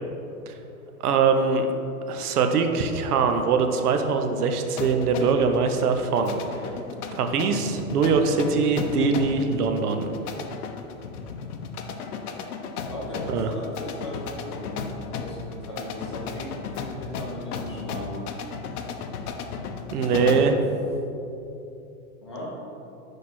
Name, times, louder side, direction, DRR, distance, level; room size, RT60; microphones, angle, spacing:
voice 1, 1.0-1.7 2.1-6.4 7.1-10.1 13.3-13.5 19.9-20.5, right 5 dB, 85° right, 6 dB, 0.9 m, -22 dB
sound 1, 4.8-20.6, left 5 dB, 80° left, 0.8 m, -35 dB
voice 2, 12.9-18.3 19.9-20.6 22.2-22.5, left 1 dB, 20° left, -4 dB, 0.4 m, -37 dB
6.6 x 4.9 x 4.3 m, 2.8 s
supercardioid pair, 165°, 44 cm